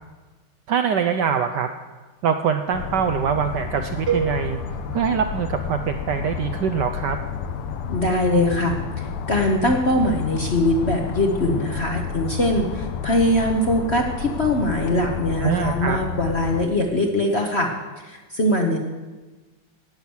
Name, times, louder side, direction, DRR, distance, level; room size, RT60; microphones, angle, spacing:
voice 1, 0.7-1.7 2.2-4.6 4.9-7.2 15.4-16.0, right 7 dB, 70° right, 7 dB, 1.0 m, -23 dB
sound 1, 2.7-16.6, left 7 dB, 90° left, 1.7 m, -31 dB
sound 2, 4.1-6.1, right 7 dB, 55° right, 1.8 m, -30 dB
voice 2, 7.9-17.7 18.0-18.8, left 1 dB, 40° left, 2 dB, 1.0 m, -22 dB
17.5 x 6.0 x 7.2 m, 1.3 s
omnidirectional pair, 2.4 m